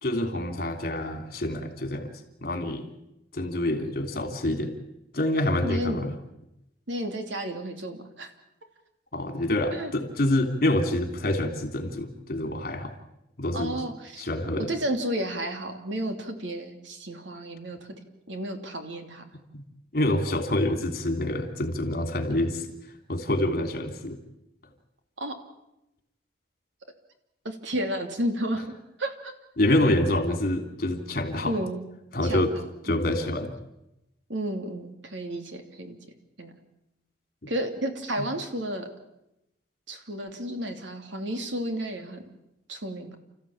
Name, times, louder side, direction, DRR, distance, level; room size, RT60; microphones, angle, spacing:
voice 1, 0.0-2.1 2.4-2.9 3.3-4.7 5.1-6.1 9.1-12.9 13.4-13.7 14.2-14.7 19.5-19.6 19.9-22.7 23.1-24.2 29.6-31.5 32.1-32.5 32.8-33.5 37.4-37.5, left 1 dB, 50° left, 6 dB, 3.2 m, -26 dB
voice 2, 5.6-6.0 6.9-8.3 9.7-9.9 13.5-14.3 14.6-17.8 18.3-19.3 25.2-25.4 27.4-28.7 29.0-29.3 31.5-31.8 32.2-33.0 34.3-36.0 36.4-36.5 37.5-38.9 39.9-42.2 42.7-43.2, right 1 dB, 85° right, 6 dB, 3.0 m, -32 dB
30.0 x 14.5 x 8.9 m, 0.88 s
head